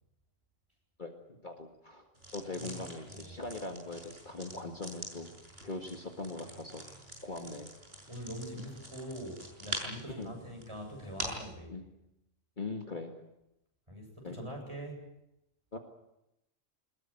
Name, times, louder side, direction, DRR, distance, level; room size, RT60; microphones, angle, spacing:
voice 1, 1.0-5.3 5.6-6.8 7.2-7.7 10.1-10.4 11.7-11.8 12.6-13.1 14.2-14.4 15.7-15.8, left 3 dB, 40° left, 3 dB, 2.0 m, -41 dB
sound 1, 2.2-11.5, right 1 dB, 50° right, 6.6 m, -45 dB
voice 2, 8.1-11.7 13.9-15.0, equal, 20° right, 1 dB, 7.9 m, -43 dB
22.0 x 21.0 x 9.0 m, 0.85 s
omnidirectional pair, 1.3 m